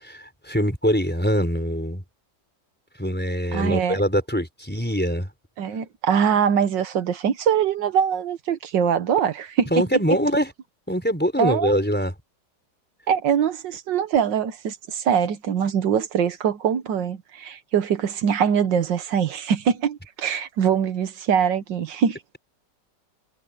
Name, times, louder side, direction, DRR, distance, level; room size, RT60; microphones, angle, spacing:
voice 1, 0.0-2.0 3.0-5.3 9.7-10.5 10.9-12.1, equal, 5° left, 4.7 m, -23 dB
voice 2, 3.5-4.0 5.6-9.7 11.4-11.7 13.1-22.2, right 8 dB, 80° right, 1.8 m, -23 dB
omnidirectional pair, 1.9 m